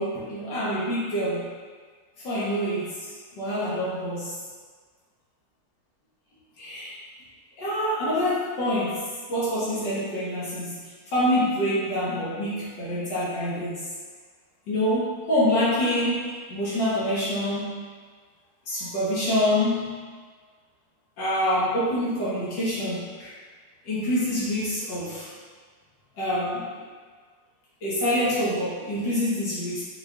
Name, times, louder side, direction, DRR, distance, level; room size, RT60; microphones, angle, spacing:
voice 1, 0.0-1.5 2.2-4.4 6.6-7.0 7.6-13.9 14.7-17.8 18.7-20.1 21.2-23.4 23.8-25.3 26.2-26.8 27.8-29.8, equal, 80° left, -9 dB, 1.4 m, -26 dB
4.5 x 2.3 x 2.3 m, 1.5 s
omnidirectional pair, 1.9 m